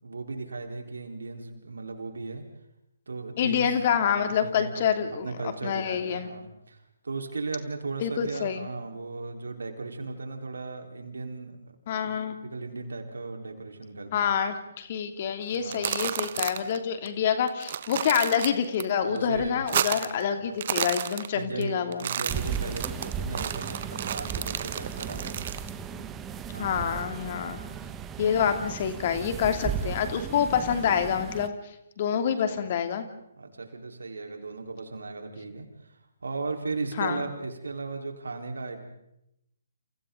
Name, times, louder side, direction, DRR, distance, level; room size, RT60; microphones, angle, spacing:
voice 1, 0.0-2.4 3.1-3.8 4.1-11.6 12.0-12.1 12.4-14.4 15.5-16.0 19.0-19.6 19.9-20.4 21.3-25.5 26.5-26.8 28.3-28.6 30.2-30.6 32.2-32.7 33.4-38.8, right 3 dB, 70° right, 4 dB, 4.2 m, -37 dB
voice 2, 3.4-5.3 5.6-6.3 8.0-8.7 11.9-12.4 14.1-22.0 25.9-26.0 26.6-27.6 28.2-31.5 32.0-33.1 37.0-37.2, left 8 dB, 40° left, 7 dB, 2.7 m, -27 dB
sound 1, 15.5-16.8 17.1-17.2 17.5-18.8 19.2-20.2 20.5-21.6 21.9-25.7, right 9 dB, 45° right, 1.3 m, -31 dB
sound 2, 22.3-31.5, right 7 dB, 15° right, 1.4 m, -36 dB
29.5 x 29.5 x 3.9 m, 0.82 s
figure-of-eight pair, 135°, 0 cm